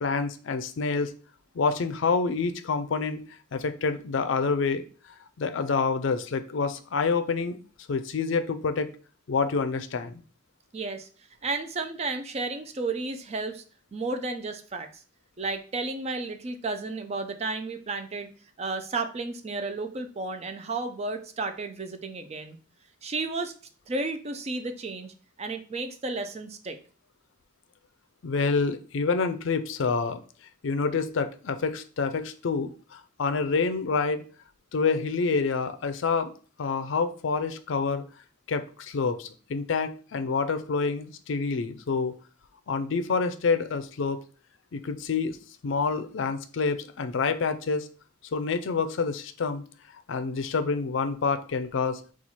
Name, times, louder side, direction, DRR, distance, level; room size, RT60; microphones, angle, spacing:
voice 1, 0.0-1.1 1.5-3.2 3.5-4.8 5.4-7.6 7.9-8.9 9.3-10.2 28.2-30.2 30.6-34.2 34.7-36.3 36.6-38.0 38.5-42.1 42.7-44.2 44.7-45.4 45.6-47.9 48.3-49.6 50.1-52.0, left 4 dB, 70° left, 9 dB, 0.4 m, -27 dB
voice 2, 10.7-11.1 11.4-13.6 13.9-15.0 15.4-18.3 18.6-22.6 23.0-23.5 23.9-26.8, right 3 dB, 30° right, 7 dB, 0.4 m, -32 dB
4.3 x 2.4 x 4.2 m, 0.41 s
head